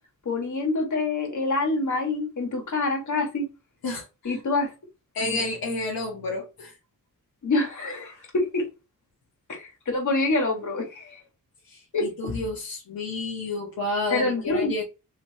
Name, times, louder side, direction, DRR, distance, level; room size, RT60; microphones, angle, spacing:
voice 1, 0.2-3.5 4.2-4.7 5.2-5.4 7.4-8.7 9.5-11.2 11.9-12.1 14.1-14.7, left 2 dB, 60° left, 1.6 m, -26 dB
voice 2, 3.8-4.3 5.1-6.7 11.7-11.8 12.2-14.8, left 2 dB, 85° left, 1.0 m, -30 dB
3.1 x 3.1 x 2.8 m
cardioid pair, 80°, 34 cm